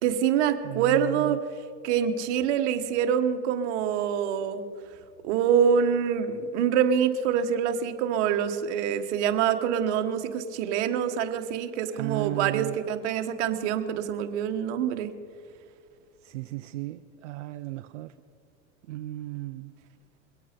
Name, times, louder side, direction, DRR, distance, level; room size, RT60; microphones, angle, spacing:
voice 1, 0.0-1.4 1.8-4.6 5.2-15.1, right 8 dB, 65° right, 7 dB, 1.4 m, -25 dB
voice 2, 0.6-1.4 11.9-12.8 16.2-18.1 18.9-19.7, right 18 dB, 90° right, 8 dB, 0.6 m, -35 dB
22.5 x 8.7 x 5.2 m, 2.3 s
supercardioid pair, 125°, 36 cm